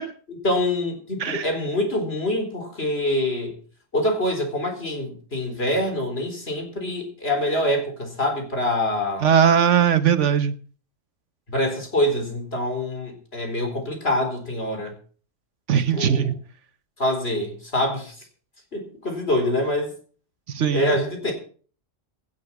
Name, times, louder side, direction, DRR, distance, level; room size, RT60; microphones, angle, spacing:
voice 1, 0.4-3.6 3.9-9.3 11.5-14.9 15.9-16.3 17.0-18.1 18.7-19.9 20.7-21.3, left 1 dB, 50° left, 4.2 m, -25 dB
voice 2, 9.2-10.6 15.7-16.4 20.5-20.9, right 8 dB, 65° right, 1.2 m, -19 dB
17.5 x 8.8 x 5.9 m
omnidirectional pair, 1.4 m